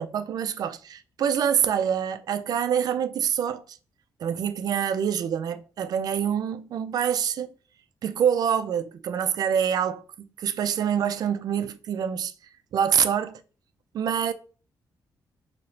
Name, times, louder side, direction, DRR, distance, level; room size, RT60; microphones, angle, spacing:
voice 1, 0.0-3.8 4.2-7.5 8.0-12.3 12.7-13.4 13.9-14.3, right 8 dB, 60° right, 0.4 m, -26 dB
3.8 x 2.8 x 3.2 m
cardioid pair, 145°, 7 cm